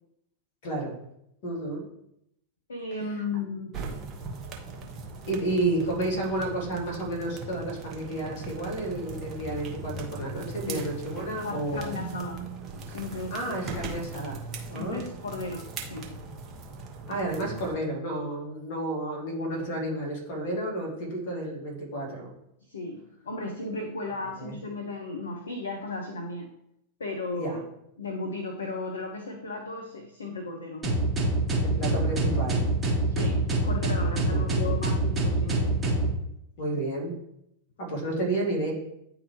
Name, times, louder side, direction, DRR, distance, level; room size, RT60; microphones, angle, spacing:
voice 1, 1.4-1.8 3.0-3.1 5.3-11.9 13.3-15.0 17.1-22.3 24.4-24.6 27.3-27.6 31.6-32.6 34.2-34.7 36.6-37.1 37.8-38.7, right 1 dB, 50° left, 0 dB, 2.5 m, -31 dB
voice 2, 2.7-3.8 10.7-10.9 11.4-12.4 12.8-13.8 14.7-16.2 22.6-26.5 27.0-27.6 28.0-30.8 33.1-35.7, left 3 dB, 70° left, 3 dB, 0.7 m, -35 dB
sound 1, 3.7-17.7, right 3 dB, 30° right, 1.2 m, -39 dB
sound 2, 30.8-36.1, right 2 dB, 15° right, 1.7 m, -25 dB
9.9 x 3.6 x 3.2 m, 0.79 s
figure-of-eight pair, 90°, 0 cm